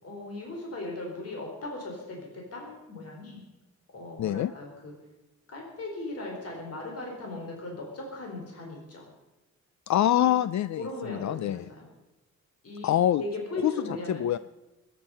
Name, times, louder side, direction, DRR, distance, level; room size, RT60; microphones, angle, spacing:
voice 1, 0.0-3.4 3.9-4.9 5.5-9.0 10.2-10.3 10.8-11.8 12.6-12.9 13.2-14.3, left 2 dB, 55° left, 0 dB, 4.3 m, -38 dB
voice 2, 4.2-4.5 9.9-11.6 12.8-13.2 13.6-13.7 14.1-14.4, left 12 dB, 70° left, 15 dB, 0.5 m, -25 dB
22.5 x 10.0 x 5.6 m, 1.0 s
wide cardioid pair, 130°, 29 cm